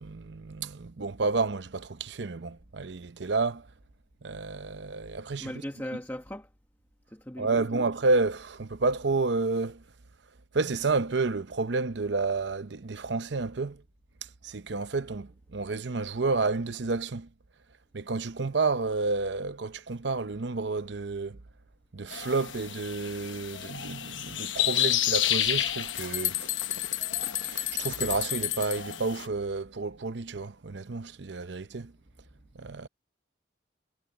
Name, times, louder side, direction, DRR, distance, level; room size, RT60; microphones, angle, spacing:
voice 1, 0.0-3.7 4.2-5.5 7.4-9.8 10.5-13.8 14.4-17.3 17.9-21.4 21.9-26.5 27.4-31.9 32.5-32.9, right 3 dB, 70° right, 0.7 m, -30 dB
voice 2, 5.4-6.5 7.1-7.9, equal, 10° left, 1.4 m, -38 dB
sound 1, 22.1-29.3, left 12 dB, 85° left, 1.0 m, -31 dB
sound 2, 25.4-25.5 25.8-29.0, left 13 dB, 40° left, 0.8 m, -32 dB
head